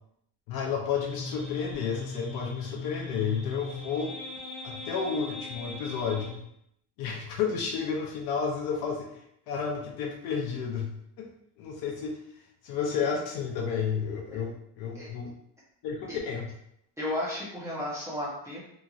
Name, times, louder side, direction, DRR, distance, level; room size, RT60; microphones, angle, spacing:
voice 1, 0.5-4.1 4.6-6.4 7.0-9.2 9.5-11.3 11.6-12.2 12.6-15.3 15.8-16.5, left 6 dB, 60° left, 0 dB, 0.6 m, -31 dB
sound 1, 1.0-6.4, left 3 dB, 85° left, 1.1 m, -39 dB
voice 2, 17.0-18.7, left 1 dB, 5° right, -8 dB, 0.7 m, -34 dB
2.9 x 2.6 x 2.4 m, 0.75 s
cardioid pair, 165°, 42 cm